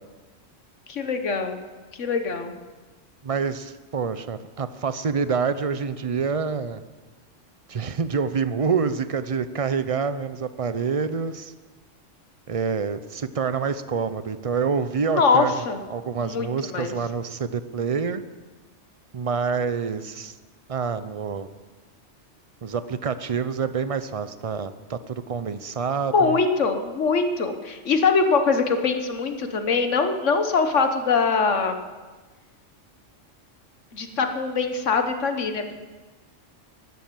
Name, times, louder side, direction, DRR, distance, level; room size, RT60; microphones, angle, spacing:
voice 1, 0.9-1.6 1.9-2.5 15.1-15.8 16.2-16.9 26.1-31.8 33.9-35.7, left 4 dB, 75° left, 7 dB, 1.6 m, -23 dB
voice 2, 3.2-6.8 7.7-11.5 12.5-15.6 15.9-18.2 19.1-20.3 20.7-21.5 22.6-26.4, right 5 dB, 40° right, 13 dB, 0.5 m, -27 dB
13.0 x 11.5 x 7.5 m, 1.3 s
omnidirectional pair, 1.3 m